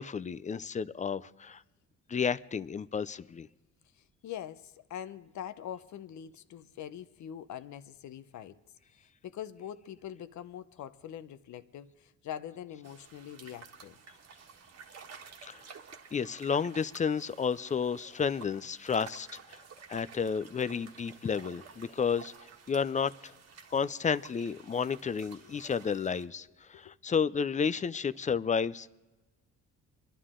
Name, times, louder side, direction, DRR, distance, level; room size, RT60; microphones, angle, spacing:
voice 1, 0.0-1.6 2.1-3.5 15.4-15.6 16.1-19.6 19.9-22.3 22.7-23.3 23.7-28.9, left 6 dB, 25° left, 0.4 m, -31 dB
voice 2, 3.9-8.6 9.0-14.0 25.3-25.6 26.7-27.0, left 10 dB, 70° left, 0.8 m, -44 dB
sound 1, 12.8-26.2, right 6 dB, 60° right, 1.5 m, -52 dB
25.0 x 11.0 x 3.7 m
cardioid pair, 90°, 30 cm